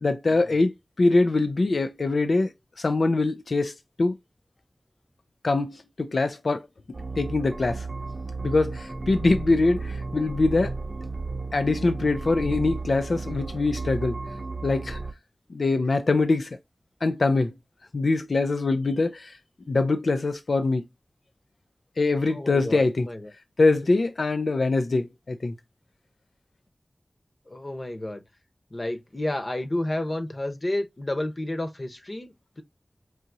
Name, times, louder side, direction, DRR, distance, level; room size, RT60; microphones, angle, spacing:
voice 1, 0.0-4.2 5.4-6.7 7.2-7.9 8.4-10.7 11.5-14.2 14.6-15.0 15.5-16.6 17.0-17.5 17.9-19.4 19.7-20.9 22.0-23.1 23.6-25.5, left 3 dB, 80° left, 0.4 m, -23 dB
sound 1, 6.9-15.1, right 3 dB, 50° right, 0.4 m, -34 dB
voice 2, 22.2-23.3 27.5-28.2 28.7-32.6, left 1 dB, 45° left, 0.9 m, -31 dB
4.7 x 2.8 x 2.6 m
wide cardioid pair, 45°, 0 cm